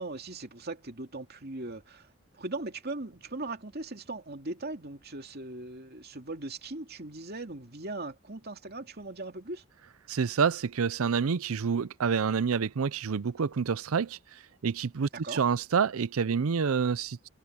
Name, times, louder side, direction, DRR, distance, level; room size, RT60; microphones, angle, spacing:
voice 1, 0.0-9.6 15.1-15.4, right 2 dB, 50° right, 2.7 m, -39 dB
voice 2, 10.1-14.2 14.6-17.3, right 6 dB, 85° right, 0.5 m, -28 dB
head